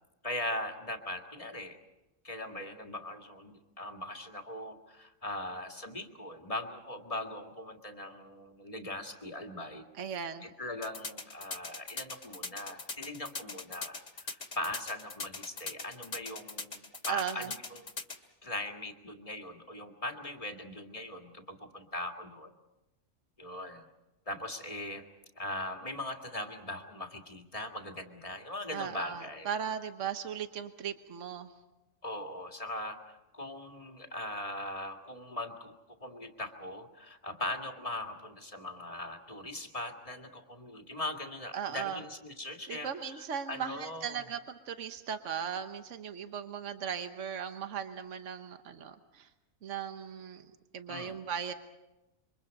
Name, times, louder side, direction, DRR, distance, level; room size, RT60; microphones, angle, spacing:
voice 1, 0.2-1.8 2.2-9.8 10.4-17.8 18.4-22.5 23.4-23.8 24.3-25.0 25.4-29.5 32.0-35.7 36.0-44.2 50.9-51.1, left 1 dB, 25° left, 4 dB, 2.1 m, -40 dB
voice 2, 9.9-10.5 17.1-17.5 28.7-31.5 41.5-42.0 42.7-49.3 49.6-51.5, right 8 dB, 70° right, 8 dB, 1.4 m, -37 dB
sound 1, 10.8-18.2, left 3 dB, 75° left, 2.6 m, -40 dB
28.0 x 24.0 x 5.3 m, 1.0 s
omnidirectional pair, 1.4 m